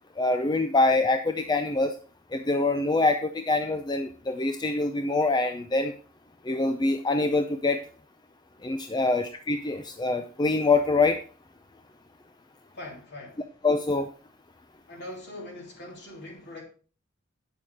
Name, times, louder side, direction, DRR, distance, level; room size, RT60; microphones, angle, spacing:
voice 1, 0.2-1.9 2.3-5.9 6.5-7.8 8.6-11.2 13.6-14.1, left 3 dB, 20° left, 7 dB, 0.5 m, -25 dB
voice 2, 12.7-13.5 14.9-16.6, left 1 dB, 55° left, 0 dB, 3.2 m, -42 dB
8.9 x 6.6 x 4.7 m, 0.39 s
head